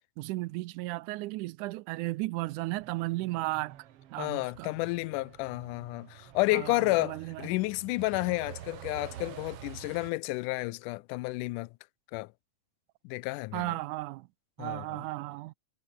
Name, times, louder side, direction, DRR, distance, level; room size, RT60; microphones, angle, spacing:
voice 1, 0.2-3.8 4.1-4.7 6.5-7.5 13.5-14.3 14.6-15.5, right 19 dB, 85° right, 2.1 m, -35 dB
Truck, 2.5-10.1, right 11 dB, 60° right, 1.8 m, -48 dB
voice 2, 4.2-11.7 12.1-12.3 13.0-13.8 14.6-15.0, left 22 dB, 90° left, 2.1 m, -31 dB
omnidirectional pair, 3.5 m